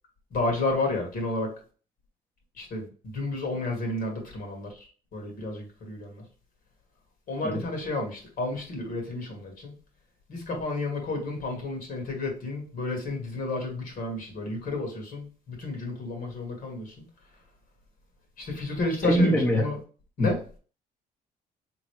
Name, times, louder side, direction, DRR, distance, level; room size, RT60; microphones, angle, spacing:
voice 1, 0.3-1.5 2.6-6.2 7.3-9.7 10.3-17.0 18.4-19.8 20.2-20.4, left 2 dB, 55° left, 1 dB, 1.6 m, -31 dB
voice 2, 19.0-19.7 20.2-20.3, equal, 10° left, -1 dB, 1.0 m, -23 dB
3.7 x 3.0 x 3.2 m, 0.39 s
cardioid pair, 110°, 17 cm